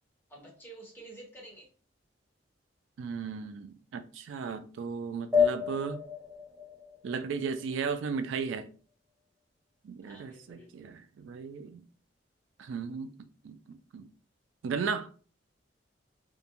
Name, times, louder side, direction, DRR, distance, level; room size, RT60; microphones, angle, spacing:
voice 1, 0.3-1.7 10.0-10.9, right 2 dB, 10° left, 1.0 m, -50 dB
voice 2, 3.0-6.0 7.0-8.7 9.8-11.8 12.6-14.1 14.6-15.1, right 5 dB, 90° right, 0.3 m, -35 dB
sound 1, 5.3-8.3, left 6 dB, 10° right, 0.5 m, -30 dB
2.4 x 2.1 x 2.8 m
head